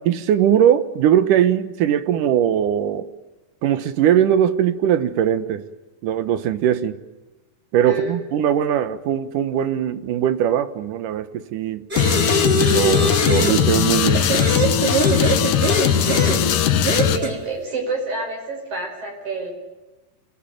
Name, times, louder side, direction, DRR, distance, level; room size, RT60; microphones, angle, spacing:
voice 1, 0.1-3.1 3.6-5.6 6.0-7.0 7.7-11.9 12.7-14.3, right 10 dB, 70° right, 12 dB, 2.5 m, -20 dB
voice 2, 7.9-8.2 16.0-19.5, right 3 dB, 55° right, 2 dB, 6.8 m, -29 dB
sound 1, 11.9-13.6 14.1-16.4 16.8-17.3, right 2 dB, 15° right, 3.9 m, -22 dB
sound 2, 12.0-17.2, left 9 dB, 70° left, 2.7 m, -19 dB
27.5 x 17.5 x 9.1 m, 1.1 s
omnidirectional pair, 4.1 m